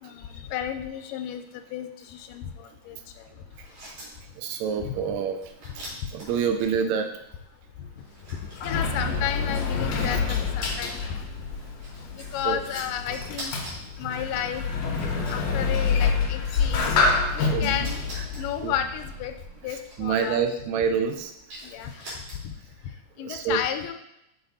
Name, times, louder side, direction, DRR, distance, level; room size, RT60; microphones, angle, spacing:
voice 1, 0.0-3.4 4.8-5.0 6.0-6.1 7.8-8.0 8.6-11.3 12.1-13.5 14.0-14.6 15.3-17.0 17.3-18.0 18.4-19.4 19.6-20.4 21.6-22.5 23.2-23.9, left 9 dB, 85° left, 7 dB, 2.2 m, -32 dB
sound 1, 3.5-22.7, equal, 55° right, 3.6 m, -45 dB
voice 2, 4.4-5.4 6.1-7.1 12.4-12.6 17.5-17.8 18.3-18.7 19.7-21.3 23.2-23.6, right 6 dB, 80° right, 6 dB, 1.7 m, -27 dB
Sliding door, 8.1-19.5, left 4 dB, 70° left, 2.0 m, -27 dB
6.8 x 4.2 x 4.1 m, 0.81 s
omnidirectional pair, 3.8 m